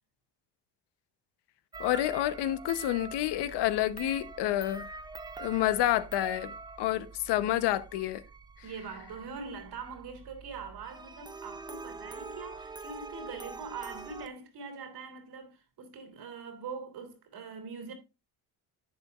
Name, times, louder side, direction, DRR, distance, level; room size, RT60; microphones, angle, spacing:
sound 1, 1.7-14.3, right 3 dB, 10° right, 0.4 m, -45 dB
voice 1, 1.8-4.9 5.4-8.2, left 13 dB, 75° left, 0.9 m, -29 dB
voice 2, 8.6-17.9, right 5 dB, 65° right, 3.1 m, -43 dB
11.0 x 8.2 x 2.4 m
cardioid pair, 95°, 41 cm